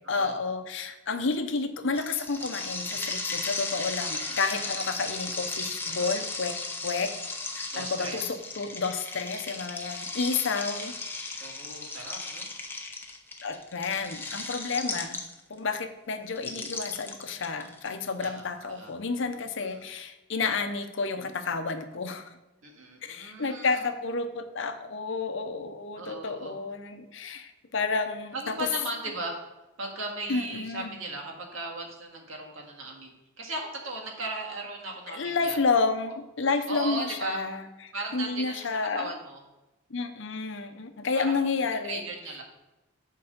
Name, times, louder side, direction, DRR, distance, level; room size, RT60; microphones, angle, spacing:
voice 1, 0.1-6.6 6.8-7.1 7.5-10.9 11.3-11.5 13.4-15.2 15.5-22.3 23.0-28.7 30.3-30.9 35.1-39.1 39.9-42.1, left 4 dB, 65° left, 8 dB, 0.7 m, -30 dB
sound 1, 2.0-15.6 16.4-18.2, left 3 dB, 10° left, 0.7 m, -36 dB
voice 2, 4.1-5.0 5.8-6.1 7.7-8.2 10.8-10.9 11.4-12.5 18.2-18.9 19.7-19.9 22.6-23.8 25.9-26.6 28.3-29.4 29.8-35.6 36.7-37.4 37.9-38.7 38.9-39.4 41.1-41.4 41.9-42.4, right 2 dB, 75° right, 1 dB, 1.8 m, -37 dB
7.1 x 4.7 x 6.6 m, 1.0 s
head